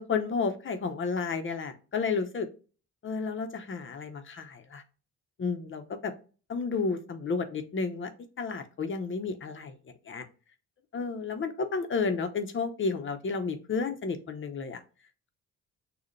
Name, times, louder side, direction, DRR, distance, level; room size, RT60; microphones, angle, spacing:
voice 1, 0.0-2.5 3.0-4.8 5.4-6.1 6.5-8.1 8.4-9.8 10.1-10.2 10.9-14.8, left 4 dB, 40° left, 8 dB, 0.9 m, -31 dB
6.5 x 2.4 x 3.2 m, 0.36 s
cardioid pair, 90°, 30 cm